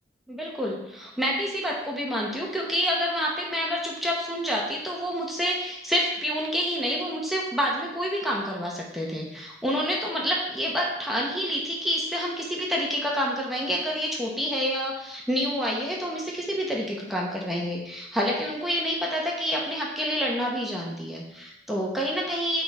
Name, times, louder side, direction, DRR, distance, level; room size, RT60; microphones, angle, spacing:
voice 1, 0.3-22.6, equal, ahead, -3 dB, 1.2 m, -28 dB
9.4 x 3.8 x 4.3 m, 0.84 s
head